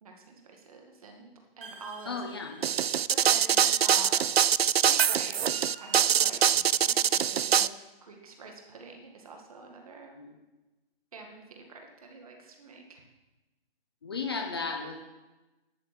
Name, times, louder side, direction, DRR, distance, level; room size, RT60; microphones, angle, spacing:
voice 1, 0.0-2.2 3.1-4.3 4.6-10.2 11.1-13.0, right 3 dB, 35° right, 3 dB, 2.0 m, -46 dB
sound 1, 1.6-3.0 3.6-4.8 5.5-7.0, right 4 dB, 65° right, 2.0 m, -49 dB
voice 2, 2.1-2.6 10.2-10.4 14.0-15.1, left 4 dB, 25° left, 4 dB, 0.8 m, -35 dB
sound 2, 2.6-7.7, right 9 dB, 80° right, 0.5 m, -24 dB
10.5 x 8.8 x 7.7 m, 1.1 s
hypercardioid pair, 175°, 30 cm